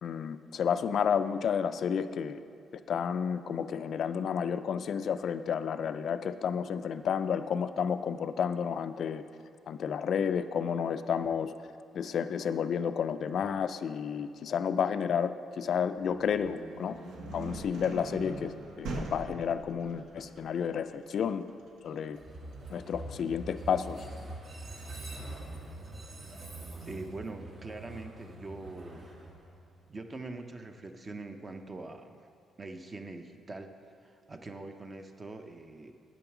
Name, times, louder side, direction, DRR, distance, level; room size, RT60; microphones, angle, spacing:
voice 1, 0.0-2.4 2.9-9.2 9.7-11.5 11.9-17.0 17.3-21.4 21.8-22.2 22.7-24.1, left 7 dB, 60° left, 11 dB, 0.3 m, -31 dB
sound 1, 16.0-25.7, right 2 dB, 80° right, 1.2 m, -44 dB
Train, 22.1-30.1, right 1 dB, 50° right, 1.7 m, -44 dB
voice 2, 26.9-29.1 29.9-32.3 32.6-33.7 34.0-35.9, right 2 dB, 30° right, 6 dB, 0.7 m, -43 dB
9.0 x 6.3 x 6.0 m, 2.3 s
cardioid pair, 90°, 0 cm